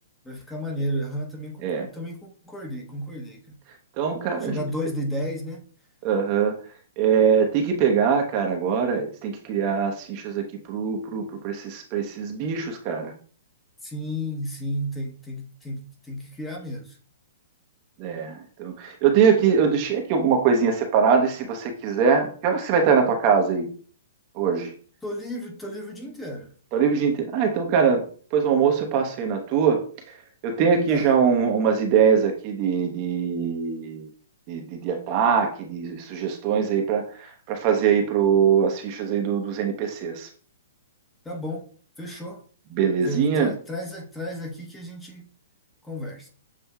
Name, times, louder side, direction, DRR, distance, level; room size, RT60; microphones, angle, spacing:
voice 1, 0.2-3.4 4.4-5.6 13.8-17.0 25.0-26.5 30.9-31.1 41.2-41.7 42.0-42.4 43.0-45.3 45.8-46.3, equal, 10° left, 0.9 m, -32 dB
voice 2, 4.0-4.6 6.0-6.6 7.0-13.1 18.0-23.7 24.3-24.7 26.7-29.9 30.4-34.1 34.5-40.3 42.7-43.5, right 6 dB, 40° right, 0.8 m, -22 dB
7.3 x 2.6 x 2.3 m
hypercardioid pair, 125°, 0 cm